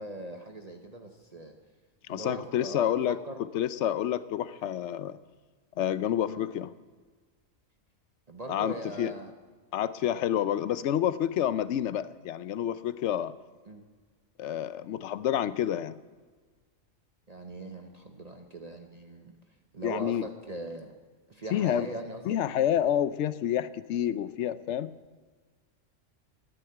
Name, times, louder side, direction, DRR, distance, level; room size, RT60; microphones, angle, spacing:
voice 1, 0.0-1.6 2.1-3.4 6.2-6.5 8.3-9.3 13.7-13.8 17.3-19.3 19.7-21.0 21.3-22.4, right 1 dB, 35° right, 4 dB, 0.9 m, -40 dB
voice 2, 2.1-3.2 3.5-5.2 5.8-6.7 8.5-9.1 9.7-13.3 14.4-16.0 19.8-20.2 21.5-21.9 22.3-24.9, left 10 dB, 70° left, 15 dB, 0.9 m, -28 dB
11.5 x 10.5 x 7.9 m, 1.4 s
omnidirectional pair, 1.3 m